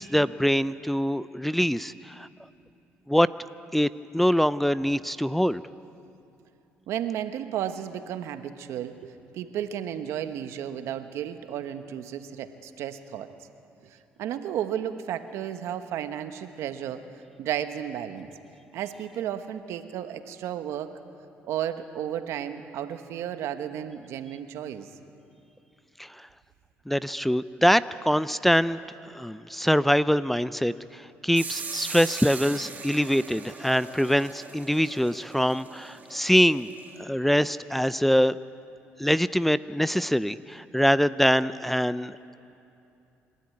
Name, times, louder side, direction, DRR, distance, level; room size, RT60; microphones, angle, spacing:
voice 1, 0.0-2.3 3.1-3.3 3.7-5.6 26.0-26.1 26.9-28.8 29.1-36.7 37.0-38.4 39.0-42.2, equal, 5° left, 16 dB, 0.4 m, -24 dB
voice 2, 6.9-13.5 13.8-18.3 18.7-20.9 21.4-24.9, right 10 dB, 75° right, 9 dB, 1.3 m, -33 dB
sound 1, 31.3-37.0, right 5 dB, 35° right, 1.7 m, -40 dB
26.5 x 12.5 x 9.7 m, 2.7 s
supercardioid pair, 85°, 5 cm